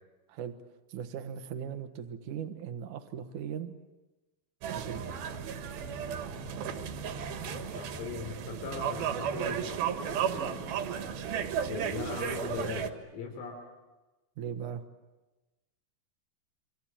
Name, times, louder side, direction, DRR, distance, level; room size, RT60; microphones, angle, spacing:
voice 1, 0.9-3.8 4.7-5.2 14.4-14.8, right 8 dB, 80° right, 7 dB, 1.8 m, -38 dB
sound 1, 4.6-12.9, right 8 dB, 60° right, 2.9 m, -34 dB
voice 2, 7.4-10.8 11.6-13.6, left 5 dB, 85° left, 2 dB, 6.4 m, -40 dB
28.5 x 25.0 x 7.4 m, 1.1 s
omnidirectional pair, 5.8 m